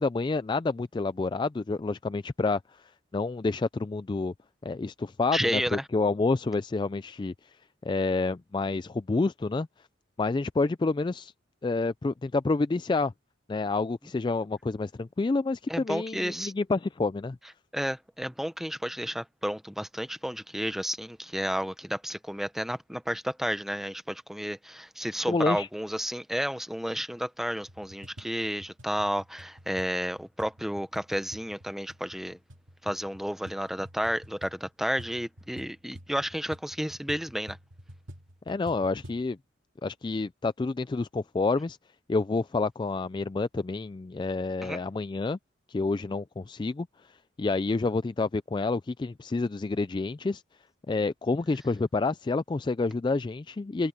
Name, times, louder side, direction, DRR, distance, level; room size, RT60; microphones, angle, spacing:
voice 1, 0.0-2.6 3.1-4.3 4.6-7.3 7.8-9.7 10.2-11.3 11.6-13.1 13.5-17.4 25.3-25.7 38.5-39.4 39.8-41.8 42.1-45.4 45.7-46.9 47.4-50.4 50.9-53.9, left 3 dB, 25° left, 0.3 m, -28 dB
voice 2, 5.3-5.8 15.7-16.5 17.7-32.4 32.8-37.6 44.6-44.8, equal, ahead, 0.8 m, -31 dB
sound 1, 27.6-39.3, equal, 90° right, 2.2 m, -49 dB
open air
head